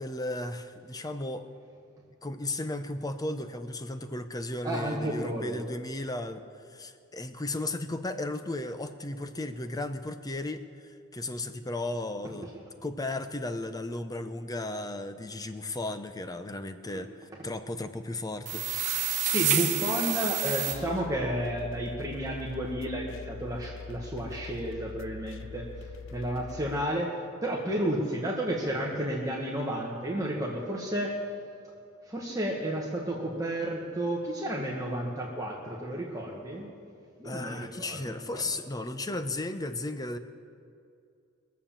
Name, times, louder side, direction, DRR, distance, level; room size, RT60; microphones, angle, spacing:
voice 1, 0.0-1.5 2.2-6.4 6.7-10.6 11.1-12.5 12.8-18.6 19.0-19.1 37.2-40.2, left 2 dB, 15° left, 9 dB, 0.7 m, -35 dB
voice 2, 4.6-5.7 11.4-11.5 16.9-17.0 19.2-27.1 27.4-31.1 32.1-36.7 37.2-38.4, right 1 dB, 15° right, -3 dB, 1.3 m, -32 dB
sound 1, 18.5-20.7, right 9 dB, 35° right, 1.5 m, -28 dB
sound 2, 20.7-26.8, left 5 dB, 65° left, 0.6 m, -43 dB
21.5 x 7.2 x 7.3 m, 2.4 s
head